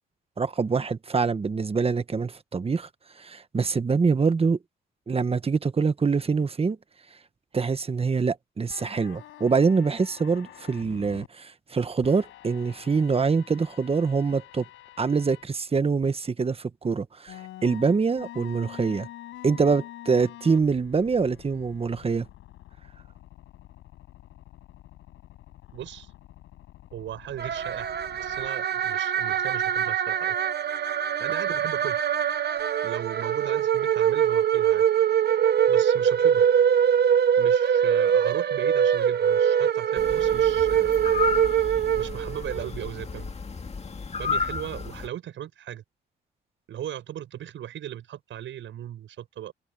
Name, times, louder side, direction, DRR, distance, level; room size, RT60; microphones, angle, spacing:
voice 1, 0.4-2.9 3.2-4.6 5.1-6.8 7.5-14.6 15.0-19.1 19.4-22.3, right 5 dB, 30° right, 1.4 m, -25 dB
sound 1, 8.7-11.3 12.0-15.4 16.0-16.1 17.3-28.5, left 14 dB, 85° left, 5.6 m, -47 dB
voice 2, 25.7-26.1 26.9-30.4 31.2-32.0 32.8-34.9 35.7-36.5 37.4-40.9 42.0-43.3 44.2-45.8 46.7-49.5, right 11 dB, 75° right, 7.1 m, -37 dB
sound 2, 27.4-42.7, right 9 dB, 55° right, 1.1 m, -23 dB
sound 3, 40.0-45.1, left 5 dB, 35° left, 2.2 m, -32 dB
open air
cardioid pair, 90°, 20 cm